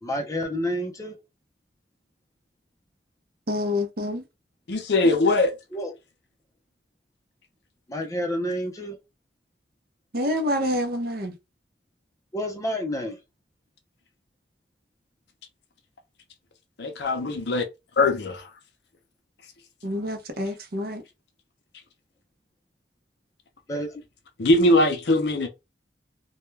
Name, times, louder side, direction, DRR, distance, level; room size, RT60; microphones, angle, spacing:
voice 1, 0.0-1.2 5.7-5.9 7.9-9.0 12.3-13.2 23.7-24.0, equal, 20° left, 0.5 m, -29 dB
voice 2, 3.5-4.2 10.1-11.3 19.8-21.0, left 1 dB, 55° right, 0.6 m, -27 dB
voice 3, 4.7-5.5 16.8-17.7 18.0-18.4 24.4-25.5, left 2 dB, 60° left, 0.5 m, -21 dB
2.2 x 2.2 x 3.1 m
head